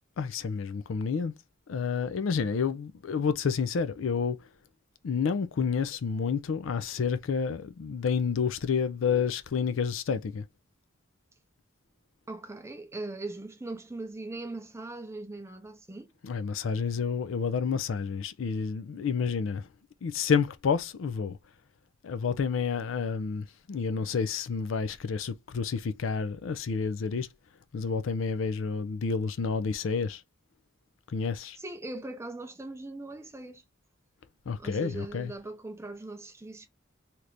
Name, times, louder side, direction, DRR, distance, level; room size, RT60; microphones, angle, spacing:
voice 1, 0.2-1.3 1.7-4.4 5.0-10.4 16.2-19.7 20.0-21.4 22.0-27.3 27.7-30.2 31.1-31.6 34.5-35.3, left 5 dB, 70° left, 0.4 m, -29 dB
voice 2, 12.3-16.1 31.6-33.6 34.6-36.7, right 2 dB, 15° right, 0.5 m, -40 dB
2.9 x 2.5 x 3.3 m
head